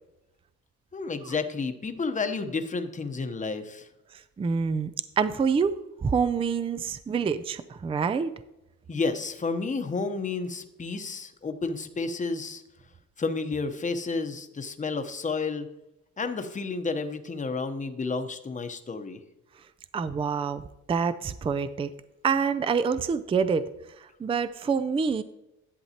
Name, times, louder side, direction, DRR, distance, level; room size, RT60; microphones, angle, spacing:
voice 1, 0.9-3.9 8.9-12.6 13.2-15.7 16.2-19.2, left 4 dB, 25° left, 8 dB, 0.9 m, -31 dB
voice 2, 4.4-4.9 5.2-5.7 6.0-8.3 19.9-20.6 20.9-21.9 22.2-23.7 24.2-25.2, right 6 dB, 20° right, 13 dB, 0.4 m, -26 dB
11.0 x 7.8 x 2.9 m, 0.94 s
cardioid pair, 90°, 30 cm